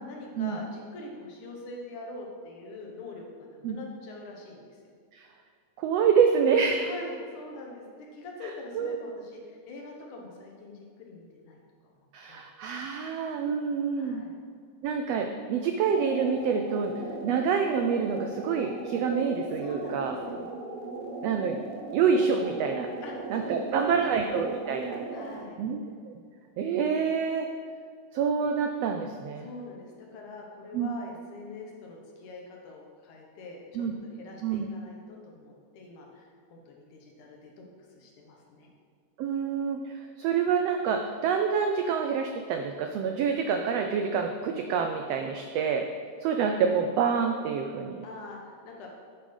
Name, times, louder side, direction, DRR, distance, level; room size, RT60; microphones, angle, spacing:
voice 1, 0.1-4.6 6.8-7.8 8.1-11.6 12.0-12.4 14.0-14.4 19.6-20.6 23.0-24.1 25.1-25.6 29.4-37.6 38.0-38.7 48.0-48.9, left 2 dB, 75° left, 0 dB, 2.9 m, -44 dB
voice 2, 5.8-6.9 8.7-9.0 12.1-14.2 14.8-16.9 17.2-20.1 21.2-21.6 21.9-22.9 23.3-25.0 25.6-26.1 26.6-27.5 28.1-29.5 30.7-30.9 33.7-33.9 34.4-34.7 39.2-45.9 46.2-48.0, right 6 dB, 85° right, 5 dB, 1.4 m, -27 dB
sound 1, 15.8-25.4, right 3 dB, 60° right, 1.7 m, -38 dB
8.9 x 8.6 x 5.4 m, 2.1 s
omnidirectional pair, 3.6 m